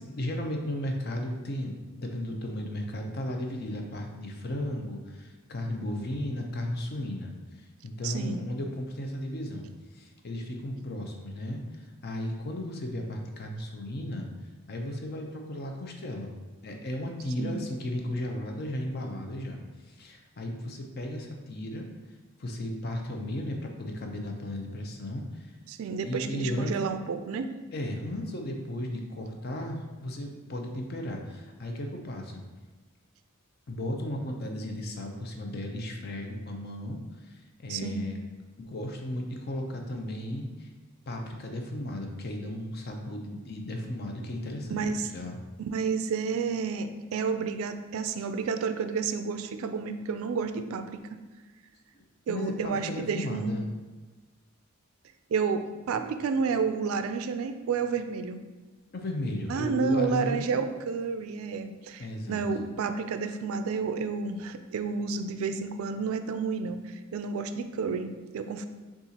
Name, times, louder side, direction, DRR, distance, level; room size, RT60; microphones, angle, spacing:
voice 1, 0.0-7.3 7.8-14.3 14.7-16.3 16.6-19.6 19.9-21.9 22.4-25.5 26.0-26.7 27.7-32.4 33.7-37.0 37.3-38.2 38.6-40.7 41.1-44.8 45.1-45.4 51.9-53.7 58.9-60.5 62.0-62.4, left 1 dB, 45° left, 2 dB, 0.5 m, -35 dB
voice 2, 8.0-8.4 17.4-17.6 25.7-27.5 37.7-38.1 44.7-45.1 45.7-51.2 52.3-53.5 55.3-58.4 59.5-68.7, right 5 dB, 75° right, 8 dB, 0.3 m, -30 dB
6.6 x 2.4 x 2.8 m, 1.3 s
head